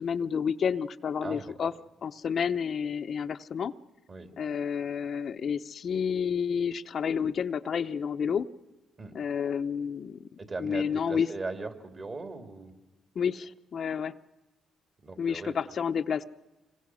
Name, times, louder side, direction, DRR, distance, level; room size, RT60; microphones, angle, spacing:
voice 1, 0.0-1.7 2.0-3.7 4.4-8.5 9.1-11.3 13.2-14.1 15.2-16.2, left 7 dB, 55° left, 9 dB, 0.7 m, -30 dB
voice 2, 1.2-1.7 4.1-4.3 9.0-9.1 10.4-12.7 15.0-15.6, right 3 dB, 40° right, 6 dB, 3.1 m, -38 dB
26.5 x 22.5 x 6.3 m, 1.1 s
cardioid pair, 90°, 0 cm